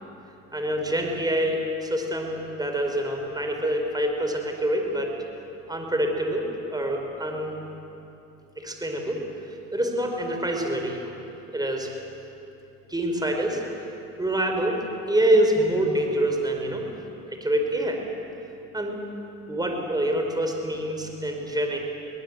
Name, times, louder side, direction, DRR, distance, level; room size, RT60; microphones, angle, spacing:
voice 1, 0.5-5.1 5.7-6.4 6.7-7.6 8.6-9.2 9.7-11.1 11.5-11.9 12.9-13.6 14.2-14.8 15.1-16.8 17.4-18.0 18.7-19.0 19.5-21.8, right 1 dB, 10° right, 2 dB, 4.8 m, -26 dB
23.0 x 19.0 x 8.2 m, 2.9 s
supercardioid pair, 75°, 36 cm